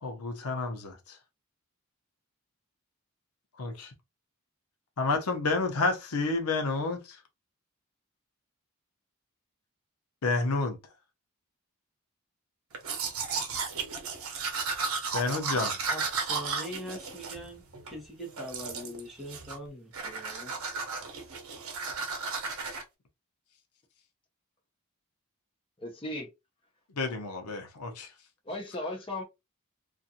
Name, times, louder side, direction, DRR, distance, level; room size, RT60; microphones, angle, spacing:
voice 1, 0.0-1.2 3.6-3.9 5.0-7.2 10.2-10.8 15.1-15.8 27.0-28.1, left 3 dB, 85° left, 0.7 m, -30 dB
Domestic sounds home sounds, 12.7-18.0 18.4-19.0 19.3-19.7 19.9-22.8, right 4 dB, 70° right, 0.7 m, -34 dB
voice 2, 15.4-20.5, equal, ahead, 0.9 m, -43 dB
voice 3, 25.8-26.3 28.5-29.2, left 1 dB, 25° left, 0.7 m, -36 dB
2.5 x 2.4 x 2.7 m
head